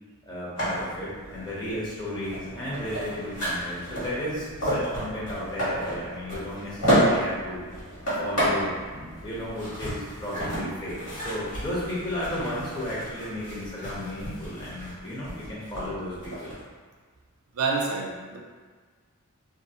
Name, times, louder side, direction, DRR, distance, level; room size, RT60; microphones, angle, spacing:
voice 1, 0.3-7.6 8.1-16.5, left 1 dB, 20° left, -8 dB, 0.5 m, -34 dB
sound 1, 0.6-16.6, equal, 65° left, 1.2 m, -31 dB
voice 2, 17.5-18.4, right 4 dB, 75° right, 0 dB, 0.4 m, -27 dB
2.4 x 2.4 x 2.7 m, 1.5 s
head